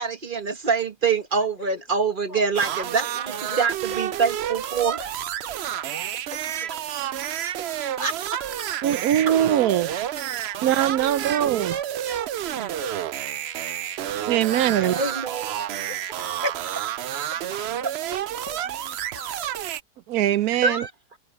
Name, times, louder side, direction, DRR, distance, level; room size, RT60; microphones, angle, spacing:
voice 1, 0.0-3.0 3.6-5.0 8.0-8.1 14.8-15.5 16.4-16.5 20.6-20.9, right 5 dB, 35° right, 1.2 m, -24 dB
voice 2, 1.3-1.9 2.3-8.0 8.4-9.2 9.9-14.0 14.3-15.2 15.6-19.7, left 3 dB, 60° left, 6.1 m, -46 dB
sound 1, 2.5-19.8, right 11 dB, 85° right, 0.5 m, -30 dB
voice 3, 8.8-9.9 10.6-11.7 14.3-14.9 20.1-20.9, right 11 dB, 70° right, 1.0 m, -21 dB
omnidirectional pair, 1.7 m